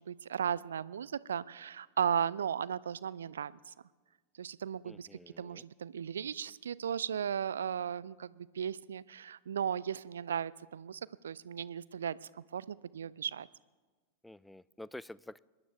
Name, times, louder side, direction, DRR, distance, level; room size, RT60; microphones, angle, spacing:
voice 1, 0.0-3.7 4.4-5.1 5.4-12.2 12.5-13.5, right 8 dB, 70° right, 21 dB, 0.4 m, -36 dB
voice 2, 4.8-5.6 14.2-15.4, left 1 dB, 5° left, 20 dB, 0.3 m, -49 dB
26.0 x 11.5 x 3.6 m, 1.4 s
figure-of-eight pair, 90°, 0 cm